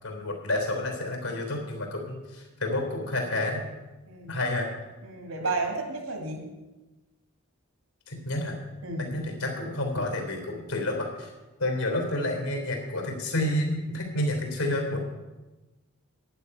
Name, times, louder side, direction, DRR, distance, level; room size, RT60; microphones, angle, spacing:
voice 1, 0.0-3.6 4.3-4.7 5.3-5.5 8.1-8.6 9.0-11.3 11.6-15.0, left 1 dB, 90° left, 2 dB, 3.4 m, -29 dB
voice 2, 5.0-6.4 8.8-9.1, right 3 dB, 80° right, 3 dB, 2.4 m, -32 dB
11.0 x 9.7 x 5.4 m, 1.1 s
head